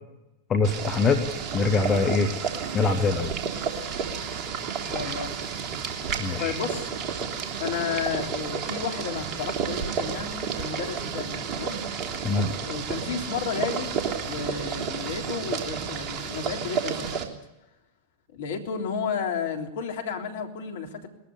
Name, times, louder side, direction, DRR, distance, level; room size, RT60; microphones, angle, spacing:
voice 1, 0.5-1.2 1.5-2.3 2.7-3.3 6.2-6.5 12.2-12.5, left 4 dB, 25° left, 9 dB, 1.9 m, -23 dB
Boiling, 0.6-17.2, right 6 dB, 35° right, 3.1 m, -31 dB
voice 2, 4.9-5.4 6.4-6.9 7.6-11.8 12.6-13.9 14.2-17.3 18.3-21.1, left 6 dB, 55° left, 4 dB, 3.5 m, -32 dB
21.5 x 14.5 x 9.8 m, 0.92 s
figure-of-eight pair, 90°, 0 cm